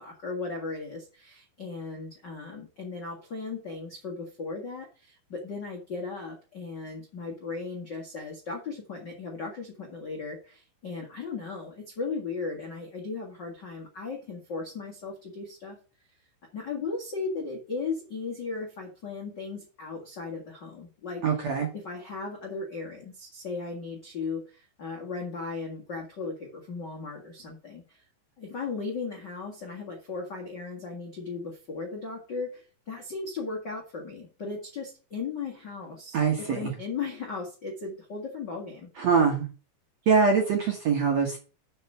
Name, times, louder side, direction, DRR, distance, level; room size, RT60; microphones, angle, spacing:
voice 1, 0.0-15.8 16.5-21.2 21.7-28.0 28.4-38.9, left 4 dB, 55° left, -1 dB, 1.2 m, -36 dB
voice 2, 21.2-21.7 36.1-36.7 39.0-39.5 40.1-41.4, right 5 dB, 60° right, 1 dB, 1.9 m, -23 dB
6.5 x 5.9 x 7.4 m, 0.36 s
omnidirectional pair, 4.9 m